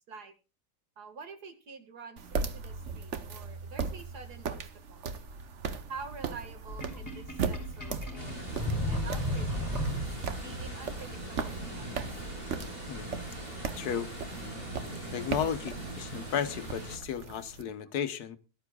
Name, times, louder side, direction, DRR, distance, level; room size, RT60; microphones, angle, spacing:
voice 1, 1.0-4.6 4.9-5.1 5.9-8.5 8.9-9.7 10.4-12.1, right 4 dB, 80° right, 7 dB, 2.3 m, -47 dB
sound 1, 2.2-17.6, right 5 dB, 55° right, 1.2 m, -38 dB
Sink (filling or washing), 6.7-10.4, left 1 dB, 10° left, 3.3 m, -34 dB
sound 2, 8.2-17.0, right 1 dB, 35° right, 5.9 m, -40 dB
voice 2, 12.9-13.2 13.8-14.1 15.1-18.4, left 8 dB, 80° left, 12 dB, 1.5 m, -34 dB
21.5 x 12.0 x 2.3 m, 0.30 s
omnidirectional pair, 1.7 m